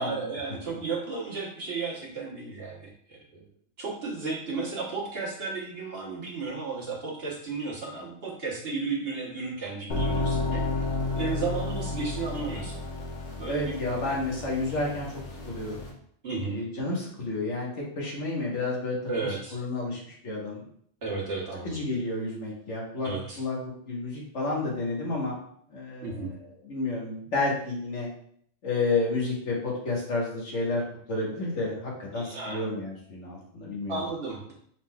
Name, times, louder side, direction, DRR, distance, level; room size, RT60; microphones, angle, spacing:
voice 1, 0.0-3.4 3.8-10.9 11.1-12.8 13.4-14.2 16.2-16.6 19.1-19.6 21.0-21.8 23.0-23.4 26.0-26.3 32.1-32.6 33.9-34.5, right 4 dB, 55° right, -3 dB, 1.3 m, -34 dB
sound 1, 9.9-15.9, left 2 dB, 85° left, 1.3 m, -32 dB
voice 2, 13.5-15.1 15.4-15.8 16.5-20.6 21.6-25.4 25.7-26.3 26.6-28.1 28.6-30.8 31.1-34.0, left 2 dB, 70° left, -3 dB, 1.5 m, -31 dB
5.5 x 3.7 x 2.3 m, 0.64 s
omnidirectional pair, 1.3 m